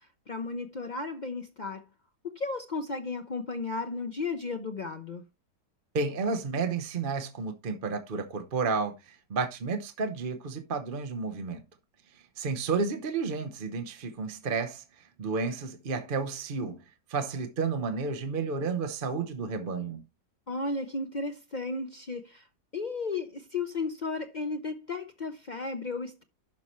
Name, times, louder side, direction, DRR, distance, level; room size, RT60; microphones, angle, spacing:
voice 1, 0.3-1.8 2.2-5.2 20.5-22.4 22.7-26.2, left 3 dB, 75° left, 0.4 m, -34 dB
voice 2, 5.9-11.6 12.4-14.8 15.2-16.8 17.1-20.0, right 4 dB, 40° right, 0.9 m, -31 dB
12.0 x 5.7 x 3.0 m
omnidirectional pair, 1.8 m